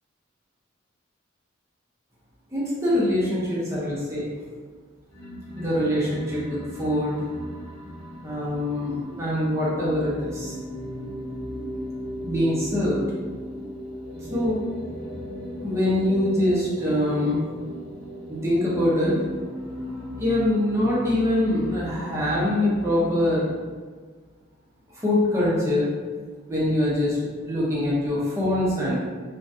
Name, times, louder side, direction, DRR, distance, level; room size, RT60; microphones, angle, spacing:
voice 1, 2.5-4.3 5.6-7.2 8.2-10.5 12.2-13.0 14.3-14.6 15.6-17.4 18.3-19.2 20.2-23.5 25.0-25.9 26.5-29.0, left 1 dB, 15° right, -8 dB, 0.7 m, -24 dB
sound 1, 5.1-23.7, equal, 85° left, 1.2 m, -37 dB
3.0 x 2.3 x 2.7 m, 1.5 s
head